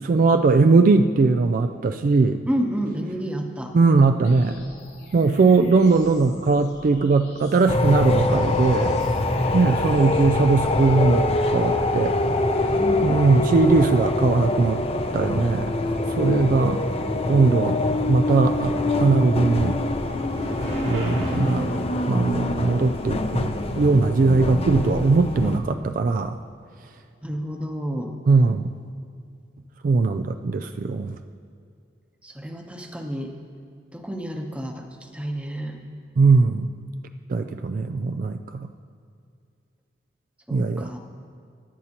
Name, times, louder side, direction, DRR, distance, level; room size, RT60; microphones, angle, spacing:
voice 1, 0.0-2.4 3.7-4.6 5.1-9.0 9.5-12.2 13.0-14.8 15.1-15.7 16.2-16.8 17.3-17.8 18.1-18.7 19.0-19.8 20.8-26.4 28.3-28.8 29.8-31.2 36.2-36.7 37.3-38.7 40.5-40.9, right 3 dB, 50° right, 8 dB, 0.3 m, -20 dB
voice 2, 2.4-3.7 12.7-13.2 21.3-21.7 25.4-25.6 27.2-28.1 32.2-33.3 33.9-35.8 40.5-41.0, equal, 5° right, 3 dB, 0.8 m, -30 dB
sound 1, 4.2-10.2, left 1 dB, 85° left, 2.9 m, -46 dB
sound 2, 7.7-25.6, left 2 dB, 35° left, 0.6 m, -24 dB
Bicycle, 18.4-24.3, right 1 dB, 75° right, 2.9 m, -43 dB
15.0 x 11.0 x 2.9 m, 2.3 s
head